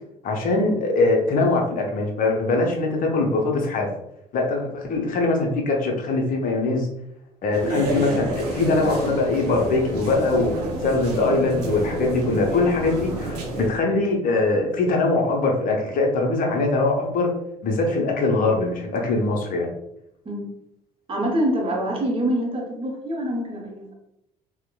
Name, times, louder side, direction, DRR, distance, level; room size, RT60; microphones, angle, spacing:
voice 1, 0.2-3.9 4.3-6.9 7.4-10.5 10.8-17.3 17.6-19.7, left 3 dB, 45° left, 1 dB, 0.7 m, -22 dB
sound 1, 7.5-13.7, right 1 dB, 75° right, 0.5 m, -28 dB
voice 2, 21.1-23.9, right 1 dB, 25° right, -1 dB, 0.8 m, -25 dB
2.9 x 2.1 x 2.2 m, 0.79 s
figure-of-eight pair, 55°, 20 cm